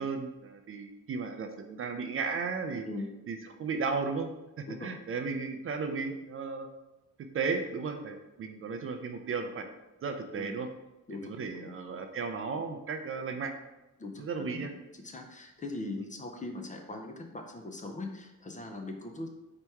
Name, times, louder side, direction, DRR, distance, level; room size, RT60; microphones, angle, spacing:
voice 1, 0.0-2.9 3.3-4.3 4.6-6.7 7.3-9.7 10.0-10.7 11.2-13.5 14.2-14.7, right 4 dB, 45° right, 6 dB, 0.4 m, -35 dB
voice 2, 14.0-14.7 14.9-19.3, left 2 dB, 25° left, 3 dB, 0.4 m, -40 dB
4.4 x 2.9 x 3.4 m, 0.99 s
wide cardioid pair, 145°, 31 cm